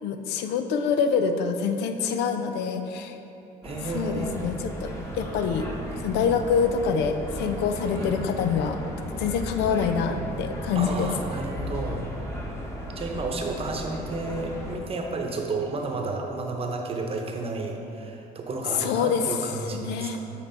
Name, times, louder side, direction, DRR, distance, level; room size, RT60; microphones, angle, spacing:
voice 1, 0.0-3.2 3.9-5.7 6.0-8.8 9.1-11.1 18.8-20.2, left 6 dB, 85° left, 7 dB, 0.5 m, -26 dB
sound 1, 3.6-14.8, equal, 15° left, 1.1 m, -35 dB
voice 2, 3.6-4.5 8.0-8.1 10.7-12.1 13.0-20.1, right 3 dB, 35° right, 2 dB, 0.9 m, -32 dB
7.5 x 4.5 x 4.4 m, 2.8 s
cardioid pair, 110°, 17 cm